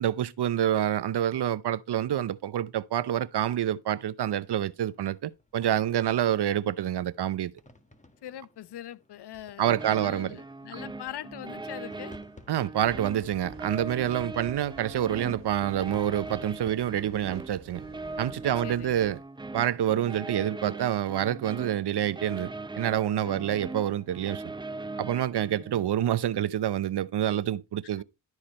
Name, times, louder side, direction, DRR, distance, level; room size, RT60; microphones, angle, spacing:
voice 1, 0.0-7.5 9.6-10.4 12.5-17.8 18.2-19.2 19.5-24.4 25.0-28.0, right 11 dB, 60° right, 0.7 m, -27 dB
sound 1, 4.2-17.2, left 2 dB, 15° left, 1.4 m, -56 dB
voice 2, 8.2-12.2 14.2-14.4 18.5-19.1 23.1-23.6 27.8-28.0, left 11 dB, 60° left, 0.7 m, -42 dB
sound 2, 9.6-25.8, right 3 dB, 10° right, 0.5 m, -40 dB
sound 3, 12.8-19.2, right 3 dB, 25° right, 2.1 m, -50 dB
12.0 x 4.9 x 4.2 m
cardioid pair, 80°, 46 cm